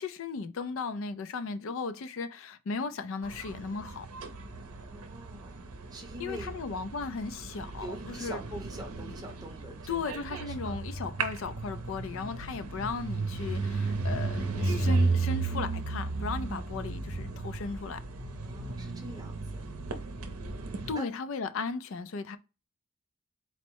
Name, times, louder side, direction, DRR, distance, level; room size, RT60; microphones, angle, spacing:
voice 1, 0.0-4.1 6.2-8.4 9.9-18.0 20.9-22.4, left 4 dB, 65° left, 0.4 m, -36 dB
sound 1, 3.2-20.9, right 3 dB, 80° right, 0.6 m, -34 dB
voice 2, 4.9-5.5 5.9-6.5 7.8-10.8 18.4-19.4 20.9-21.1, right 1 dB, 15° right, 0.8 m, -44 dB
4.2 x 2.0 x 4.5 m
head